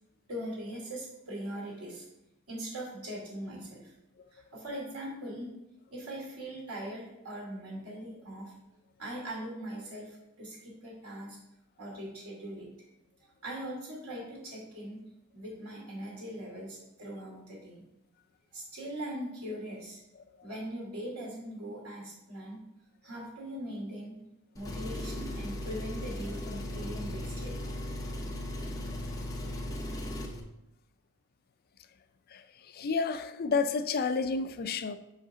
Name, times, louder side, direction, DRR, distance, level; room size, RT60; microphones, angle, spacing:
voice 1, 0.3-2.0 2.5-3.9 4.3-5.5 5.9-8.5 9.0-11.4 11.8-12.7 13.4-15.0 15.3-17.8 18.5-20.0 20.4-22.6 23.0-24.2 24.5-27.5, right 1 dB, 80° right, 2.8 m, -40 dB
Engine, 24.6-30.4, left 1 dB, 15° left, 0.8 m, -37 dB
voice 2, 32.7-35.0, left 4 dB, 45° left, 0.4 m, -30 dB
6.4 x 4.9 x 4.9 m
head